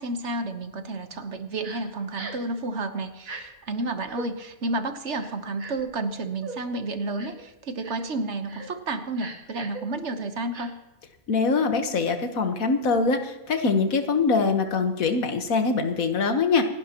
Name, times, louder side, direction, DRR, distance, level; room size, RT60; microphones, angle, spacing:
voice 1, 0.0-10.7, right 2 dB, 55° right, 8 dB, 1.3 m, -31 dB
Crying sobbing, 1.6-1.8 2.1-2.5 3.2-3.4 4.0-4.3 5.2-5.9 6.4-6.6 7.2-7.4 7.8-8.1 8.5-8.7 9.1-9.8 10.5-10.7, right 3 dB, 75° right, 2.4 m, -39 dB
voice 2, 11.3-16.6, left 4 dB, 75° left, 6 dB, 1.7 m, -23 dB
28.0 x 11.0 x 3.0 m, 1.1 s
omnidirectional pair, 1.5 m